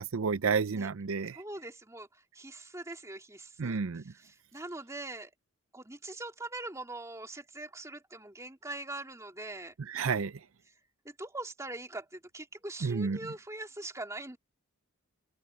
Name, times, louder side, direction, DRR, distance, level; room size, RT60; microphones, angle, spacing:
voice 1, 0.0-1.4 3.6-4.0 9.9-10.3 12.8-13.2, right 5 dB, 70° right, 0.5 m, -30 dB
voice 2, 1.3-5.3 5.7-9.7 10.6-10.8 11.0-14.4, right 2 dB, 15° right, 3.0 m, -42 dB
head